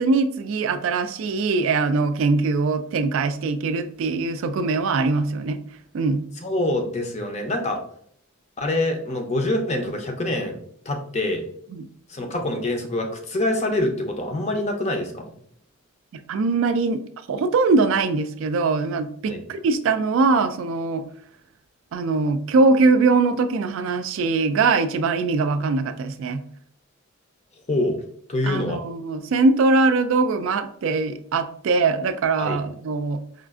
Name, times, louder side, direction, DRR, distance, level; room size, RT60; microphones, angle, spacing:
voice 1, 0.0-5.6 5.9-6.2 11.7-11.8 16.3-17.0 17.3-21.0 21.9-26.4 28.4-33.2, right 3 dB, 65° right, 10 dB, 0.3 m, -22 dB
voice 2, 6.4-7.8 8.6-10.6 10.9-11.5 12.1-15.3 19.3-19.4 27.7-28.0 28.3-28.8 32.4-32.6, left 1 dB, 30° left, 4 dB, 0.5 m, -25 dB
4.9 x 2.4 x 2.4 m, 0.63 s
head